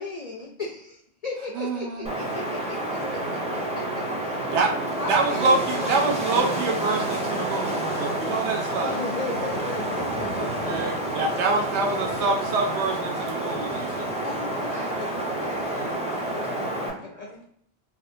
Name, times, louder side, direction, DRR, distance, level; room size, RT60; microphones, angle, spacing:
voice 1, 0.0-2.8 4.2-4.5 5.0-5.9 8.8-11.1 11.8-12.3 14.2-14.7 16.4-17.4, left 3 dB, 65° left, 0 dB, 0.4 m, -35 dB
voice 2, 1.5-2.2 4.5-9.0 10.3-14.1, right 3 dB, 80° right, 1 dB, 0.9 m, -26 dB
Wind, 2.0-16.9, right 1 dB, 10° right, 0.3 m, -29 dB
voice 3, 14.6-17.4, left 1 dB, 50° right, -6 dB, 1.8 m, -44 dB
3.5 x 2.4 x 2.6 m, 0.65 s
omnidirectional pair, 1.2 m